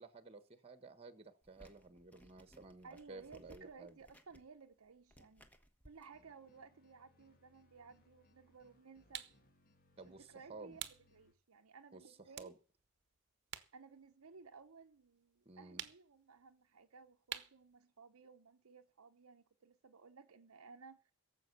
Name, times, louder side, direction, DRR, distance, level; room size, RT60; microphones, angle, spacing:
voice 1, 0.0-4.0 10.0-10.8 11.9-12.6 15.4-15.8, right 3 dB, 30° right, 1.2 m, -54 dB
sound 1, 1.4-6.1, equal, 5° left, 1.2 m, -64 dB
voice 2, 2.8-5.5 5.8-9.3 10.0-10.8 11.1-12.5 13.7-21.1, right 5 dB, 80° right, 0.8 m, -58 dB
sound 2, 6.0-11.3, left 1 dB, 45° left, 1.6 m, -71 dB
sound 3, 9.1-9.4 10.8-11.1 11.6-11.7 12.3-13.8 14.0-15.1 15.8-16.2 17.3-17.6, right 11 dB, 55° right, 0.9 m, -47 dB
17.5 x 7.5 x 6.8 m
head